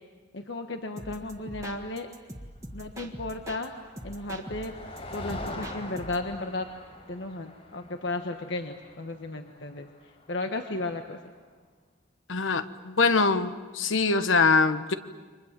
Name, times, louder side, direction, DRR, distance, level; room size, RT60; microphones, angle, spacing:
voice 1, 0.3-2.1 2.7-3.8 4.0-4.7 5.1-6.7 7.1-9.9 10.3-11.2, left 2 dB, 70° left, 5 dB, 1.3 m, -34 dB
sound 1, 1.0-3.7 4.0-6.3, right 1 dB, 15° right, 1.7 m, -43 dB
Motor vehicle (road), 3.3-11.0, left 1 dB, 35° left, 5.1 m, -44 dB
voice 2, 12.3-14.9, left 4 dB, 85° left, 11 dB, 1.2 m, -23 dB
29.5 x 25.0 x 7.5 m, 1.4 s
head